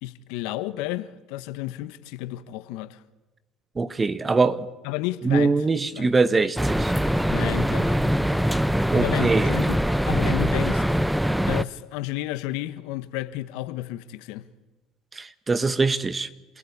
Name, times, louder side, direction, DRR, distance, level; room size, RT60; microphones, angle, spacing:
voice 1, 0.0-3.0 4.8-6.1 7.3-8.2 8.9-10.8 11.5-14.5, left 15 dB, 70° left, 13 dB, 1.3 m, -32 dB
voice 2, 3.7-4.7 5.2-6.9 8.9-9.6 15.1-16.3, right 4 dB, 25° right, 13 dB, 1.5 m, -23 dB
sound 1, 6.6-11.6, equal, 5° right, 0.9 m, -23 dB
27.0 x 16.5 x 9.9 m, 1.1 s
hypercardioid pair, 70°, 0 cm